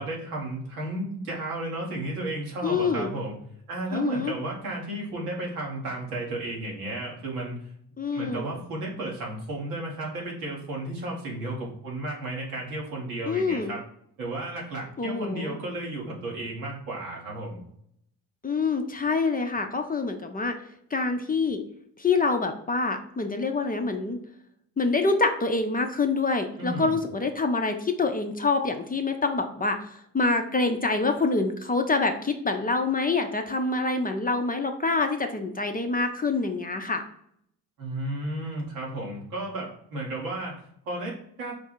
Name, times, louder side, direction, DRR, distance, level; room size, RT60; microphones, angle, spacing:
voice 1, 0.0-3.3 3.7-7.7 8.1-13.8 14.2-17.6 26.6-27.0 37.8-41.6, right 1 dB, 85° right, -3 dB, 1.2 m, -33 dB
voice 2, 2.6-3.1 3.9-4.3 8.0-8.5 13.3-13.7 15.0-15.6 18.4-20.5 20.9-21.6 22.0-24.2 24.8-29.9 30.1-37.0, left 3 dB, 20° left, 5 dB, 0.5 m, -26 dB
4.6 x 2.3 x 4.4 m, 0.70 s
hypercardioid pair, 40°, 46 cm